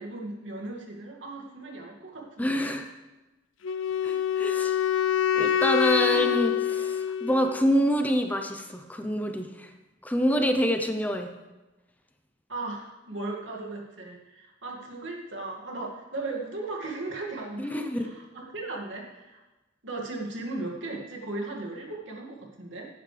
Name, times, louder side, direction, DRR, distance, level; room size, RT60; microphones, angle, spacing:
voice 1, 0.0-2.7 5.3-5.4 6.1-6.4 12.5-19.4 19.8-22.9, right 2 dB, 80° right, -1 dB, 2.2 m, -37 dB
voice 2, 2.4-2.9 4.0-4.8 5.4-9.7 10.0-11.3 17.6-18.1, equal, 10° left, 6 dB, 0.7 m, -26 dB
Wind instrument woodwind instrument, 3.6-7.7, left 9 dB, 90° left, 0.4 m, -26 dB
17.5 x 9.8 x 3.4 m, 1.1 s
head